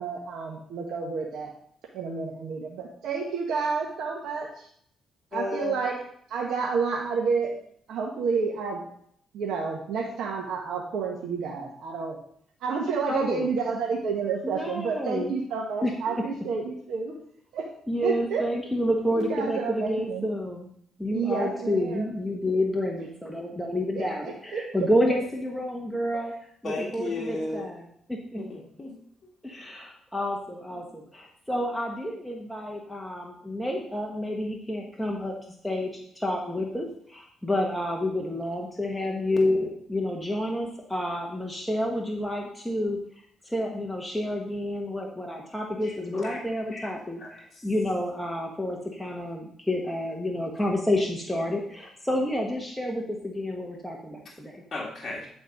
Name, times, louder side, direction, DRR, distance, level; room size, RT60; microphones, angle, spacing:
voice 1, 0.0-1.5 1.9-4.7 5.3-5.9 6.3-7.5 7.9-8.8 9.3-12.2 12.6-17.1 17.5-17.7 18.0-18.4 19.1-20.3 21.1-22.1 23.9-24.9 26.1-26.3, right 5 dB, 80° right, -1 dB, 1.3 m, -30 dB
voice 2, 5.3-5.8 26.6-27.7 28.4-29.3 30.7-30.9 45.8-46.4 46.7-46.9 47.2-47.7 54.7-55.3, left 2 dB, 35° left, -4 dB, 1.9 m, -35 dB
voice 3, 13.1-13.5 14.4-15.3 15.8-16.2 17.9-20.7 21.0-26.3 26.6-27.8 28.1-28.4 29.4-35.3 35.6-43.0 43.4-54.6, left 1 dB, 5° left, -1 dB, 1.3 m, -29 dB
9.9 x 4.3 x 5.3 m, 0.66 s
cardioid pair, 90°, 0 cm